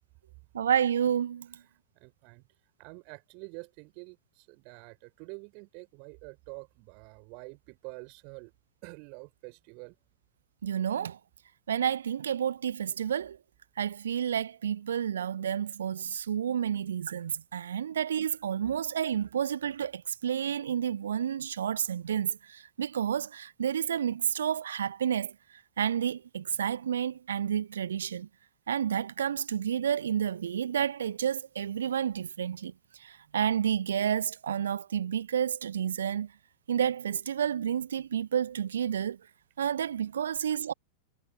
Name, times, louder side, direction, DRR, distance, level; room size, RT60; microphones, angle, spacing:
voice 1, 0.5-1.6 10.6-11.2 11.7-13.4 13.8-25.3 25.8-28.3 28.7-32.7 33.0-36.3 36.7-39.2 39.6-40.7, right 9 dB, 65° right, 1.2 m, -30 dB
voice 2, 1.9-2.4 2.8-8.5 8.8-10.0 17.8-17.9, right 37 dB, 45° right, 4.5 m, -47 dB
figure-of-eight pair, 90°, 0 cm